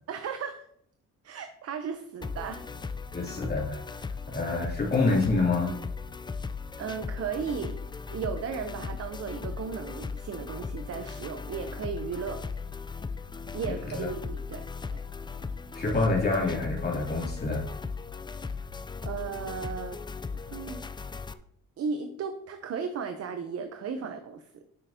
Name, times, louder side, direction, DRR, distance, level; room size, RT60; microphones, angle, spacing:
voice 1, 0.1-0.7 1.2-2.6 6.8-7.8 8.1-12.4 13.5-14.6 14.9-15.0 19.0-20.0 20.3-20.8 21.8-24.6, right 6 dB, 55° right, 8 dB, 0.8 m, -35 dB
sound 1, 2.2-21.3, left 4 dB, 15° left, 0.4 m, -38 dB
voice 2, 3.1-4.0 4.3-5.7 13.9-14.1 15.7-17.6, left 3 dB, 30° left, -4 dB, 2.8 m, -27 dB
9.4 x 6.5 x 2.8 m, 0.67 s
cardioid pair, 90°, 30 cm